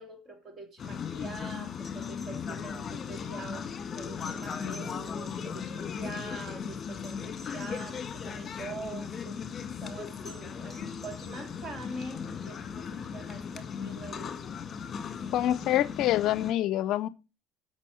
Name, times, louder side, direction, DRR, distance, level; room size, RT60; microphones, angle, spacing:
voice 1, 0.0-9.4 9.8-14.4, right 2 dB, 30° right, 2.6 m, -44 dB
sound 1, 0.8-16.5, left 6 dB, 35° left, 1.6 m, -37 dB
sound 2, 1.8-3.1 4.2-5.7 7.0-8.3 10.2-11.7 13.5-13.6, left 1 dB, 10° left, 4.6 m, -52 dB
voice 2, 15.3-17.1, left 13 dB, 60° left, 0.5 m, -26 dB
8.3 x 6.0 x 6.2 m
supercardioid pair, 100°, 0 cm